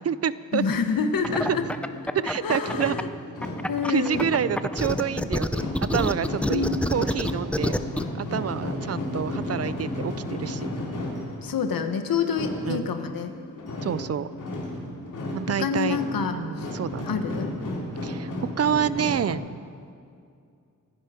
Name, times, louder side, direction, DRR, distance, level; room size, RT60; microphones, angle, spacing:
voice 1, 0.0-0.6 1.4-1.6 2.1-3.0 3.9-6.6 6.9-7.8 8.2-10.7 12.7-12.9 13.8-14.3 15.3-16.0 16.3-17.2 18.0-18.3 18.6-19.4, right 8 dB, 45° right, 16 dB, 0.5 m, -28 dB
voice 2, 0.5-1.6 2.4-3.1 3.7-4.2 6.5-6.9 11.4-13.3 15.5-16.7 17.0-17.5, left 6 dB, 80° left, 7 dB, 1.3 m, -27 dB
sound 1, 0.7-19.3, left 1 dB, 65° left, 3.5 m, -34 dB
sound 2, 1.2-3.0 3.4-8.0, left 1 dB, 5° left, 0.5 m, -27 dB
25.5 x 10.5 x 5.1 m, 2.4 s
wide cardioid pair, 110°, 34 cm